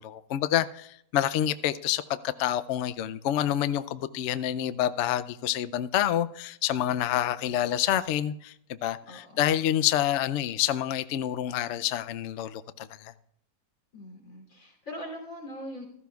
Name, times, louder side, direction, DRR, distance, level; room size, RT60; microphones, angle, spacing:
voice 1, 0.0-8.5 8.8-13.1, left 11 dB, 85° left, 0.6 m, -28 dB
voice 2, 9.1-9.5 13.9-15.8, equal, 50° left, 3.5 m, -41 dB
15.0 x 14.5 x 2.3 m
omnidirectional pair, 1.8 m